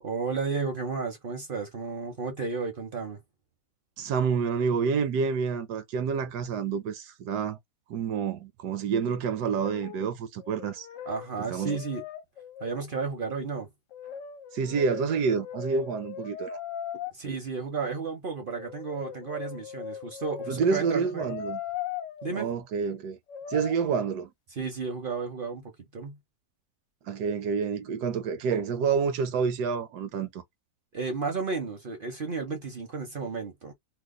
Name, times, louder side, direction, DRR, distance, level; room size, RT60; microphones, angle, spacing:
voice 1, 0.0-3.2 11.1-12.0 12.6-13.7 17.1-21.3 22.2-22.5 24.5-26.2 30.9-33.7, right 4 dB, 50° right, 0.6 m, -33 dB
voice 2, 4.0-7.6 7.9-10.9 11.4-11.7 14.5-16.6 20.5-21.6 22.3-23.2 23.5-24.3 27.1-30.4, right 6 dB, 75° right, 1.1 m, -28 dB
Brass instrument, 9.4-10.1 10.4-12.9 13.9-17.1 18.5-22.3 23.3-23.7, left 8 dB, 75° left, 0.7 m, -39 dB
2.9 x 2.1 x 3.6 m
omnidirectional pair, 1.8 m